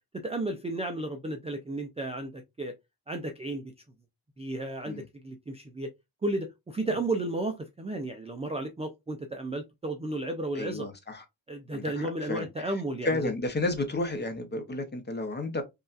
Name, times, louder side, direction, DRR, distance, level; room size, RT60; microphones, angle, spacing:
voice 1, 0.2-2.7 3.1-3.7 4.4-5.9 6.2-10.9 11.5-13.3, right 2 dB, 15° right, 0.3 m, -33 dB
voice 2, 10.5-11.2 11.7-12.7 13.0-15.6, left 2 dB, 25° left, 0.7 m, -32 dB
5.4 x 2.4 x 2.4 m
wide cardioid pair, 175°, 45 cm